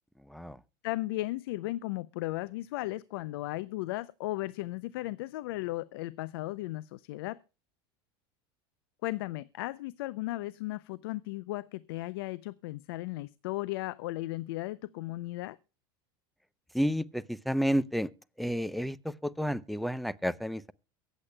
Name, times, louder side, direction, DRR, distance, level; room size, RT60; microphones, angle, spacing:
voice 1, 0.3-0.6 16.7-18.1 18.4-20.7, equal, ahead, 0.6 m, -31 dB
voice 2, 0.8-7.4 9.0-15.6, left 18 dB, 80° left, 0.5 m, -36 dB
23.0 x 8.3 x 2.2 m
supercardioid pair, 105°, 12 cm